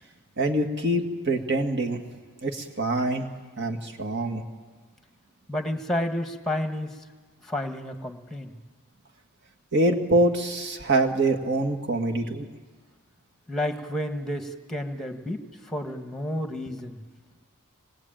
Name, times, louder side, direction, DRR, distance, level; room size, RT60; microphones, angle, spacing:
voice 1, 0.4-2.0 2.4-3.3 3.6-4.4 9.7-12.4, right 2 dB, 55° right, 4 dB, 2.1 m, -25 dB
voice 2, 5.5-6.9 7.4-8.6 13.5-17.0, left 1 dB, ahead, 6 dB, 1.5 m, -31 dB
25.5 x 20.0 x 9.0 m, 1.4 s
head